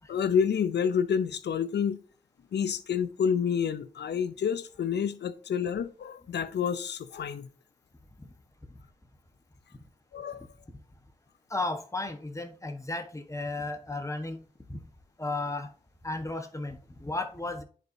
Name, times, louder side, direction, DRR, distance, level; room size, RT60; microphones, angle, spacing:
voice 1, 0.1-2.0 2.5-7.5 10.1-10.5, left 7 dB, 80° left, 0.6 m, -28 dB
voice 2, 11.5-14.4 15.2-15.7 16.0-17.6, left 2 dB, 15° left, 1.3 m, -34 dB
10.0 x 4.1 x 2.7 m
cardioid pair, 45°, 18 cm